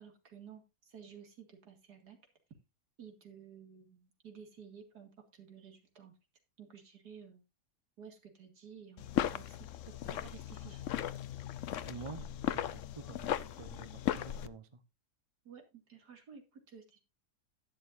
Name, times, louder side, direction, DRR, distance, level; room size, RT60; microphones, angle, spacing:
voice 1, 0.0-2.2 3.0-6.1 6.6-7.4 8.0-11.0 15.4-17.0, right 7 dB, 75° right, 2.7 m, -54 dB
sound 1, 9.0-14.5, left 11 dB, 60° left, 0.8 m, -37 dB
voice 2, 11.8-14.8, right 4 dB, 25° right, 0.7 m, -48 dB
11.5 x 10.5 x 2.6 m
omnidirectional pair, 1.7 m